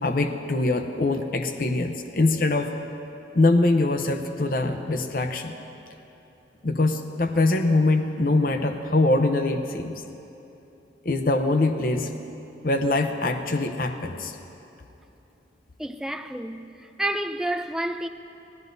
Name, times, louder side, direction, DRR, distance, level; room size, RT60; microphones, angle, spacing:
voice 1, 0.0-2.7 3.3-5.5 6.6-9.9 11.0-12.1 12.6-14.3, left 2 dB, 50° left, 0.7 m, -23 dB
voice 2, 15.8-18.1, right 1 dB, 5° right, 0.4 m, -30 dB
25.0 x 17.0 x 2.7 m
head